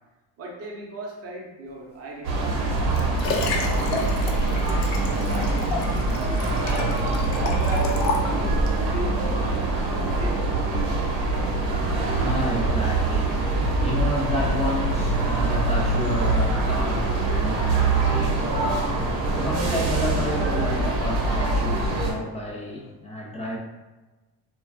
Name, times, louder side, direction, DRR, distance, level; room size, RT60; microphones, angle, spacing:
voice 1, 0.4-4.3 4.9-7.0 7.3-9.3 9.8-10.5, right 2 dB, 35° right, -2 dB, 0.6 m, -38 dB
sound 1, 2.2-22.1, right 2 dB, 65° right, 0.8 m, -24 dB
Liquid, 2.5-8.8 9.5-9.6, left 2 dB, 85° left, 0.5 m, -30 dB
voice 2, 12.0-23.6, left 1 dB, 15° left, -3 dB, 0.4 m, -31 dB
2.3 x 2.2 x 2.4 m, 1.1 s
cardioid pair, 110°, 44 cm